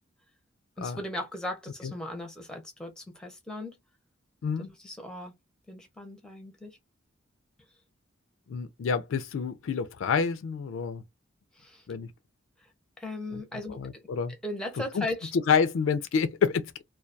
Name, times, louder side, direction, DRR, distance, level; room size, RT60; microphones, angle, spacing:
voice 1, 0.8-3.8 4.6-5.3 5.7-6.8 11.5-11.8 13.0-15.3, left 1 dB, 5° left, 0.6 m, -38 dB
voice 2, 8.5-11.0 11.9-12.1 13.8-14.3 14.9-15.0 15.3-16.8, left 6 dB, 75° left, 0.4 m, -28 dB
2.2 x 2.2 x 2.5 m
head